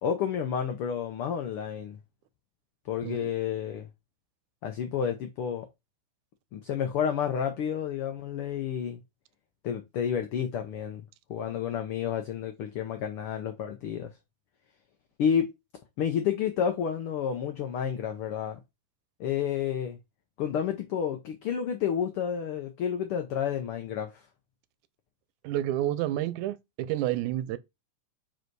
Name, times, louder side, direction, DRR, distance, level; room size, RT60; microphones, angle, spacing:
voice 1, 0.0-2.0 2.9-3.9 4.6-5.7 6.5-9.0 9.6-11.0 11.3-14.1 15.2-15.5 16.0-18.6 19.2-20.0 20.4-24.2, left 8 dB, 90° left, 1.2 m, -30 dB
voice 2, 25.4-27.6, right 13 dB, 80° right, 2.0 m, -30 dB
5.0 x 4.9 x 4.6 m
omnidirectional pair, 3.4 m